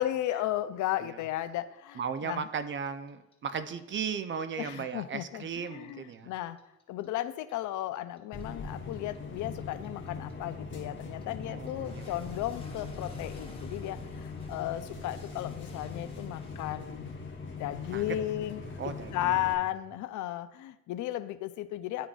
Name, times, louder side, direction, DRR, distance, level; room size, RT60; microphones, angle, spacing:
voice 1, 0.0-2.5 4.6-6.6 6.9-17.0 17.6-18.6 19.1-22.1, left 14 dB, 80° left, 12 dB, 0.5 m, -34 dB
voice 2, 2.0-6.3 11.5-12.2 15.0-15.1 17.9-18.1 18.8-19.4, right 6 dB, 40° right, 11 dB, 0.5 m, -36 dB
Clock, 2.2-5.2 5.4-8.4 8.7-17.5, left 1 dB, 20° left, 1.2 m, -51 dB
sound 1, 8.3-19.5, left 4 dB, 40° left, 1.1 m, -41 dB
11.0 x 3.8 x 2.4 m, 0.87 s
cardioid pair, 90°, 30 cm